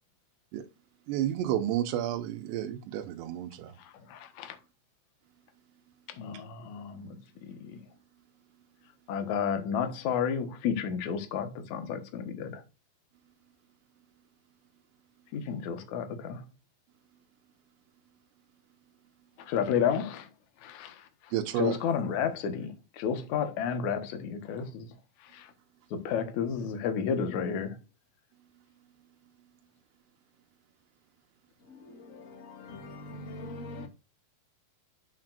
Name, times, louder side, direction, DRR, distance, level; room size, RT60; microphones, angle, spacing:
voice 1, 1.1-3.8 6.3-6.4 21.3-21.9, right 12 dB, 80° right, 2.9 m, -31 dB
voice 2, 4.1-4.6 6.2-7.2 7.5-7.8 9.1-12.6 15.3-16.4 19.4-20.3 20.6-21.0 21.6-24.9 25.3-25.5 25.9-27.8, left 7 dB, 60° left, 2.2 m, -31 dB
voice 3, 31.7-33.9, left 2 dB, 85° left, 0.7 m, -43 dB
8.5 x 7.4 x 2.5 m
omnidirectional pair, 4.9 m